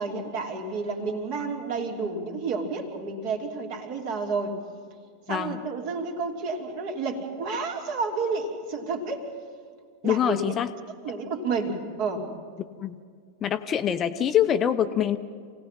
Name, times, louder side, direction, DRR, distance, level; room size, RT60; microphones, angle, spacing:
voice 1, 0.0-4.6 5.3-9.3 10.0-10.6 11.0-12.3, right 4 dB, 45° right, 3 dB, 2.9 m, -30 dB
voice 2, 5.3-5.6 10.0-10.7 12.8-12.9 13.4-15.2, left 9 dB, 25° left, 10 dB, 0.8 m, -24 dB
28.0 x 18.0 x 5.9 m, 2.1 s
figure-of-eight pair, 90°, 0 cm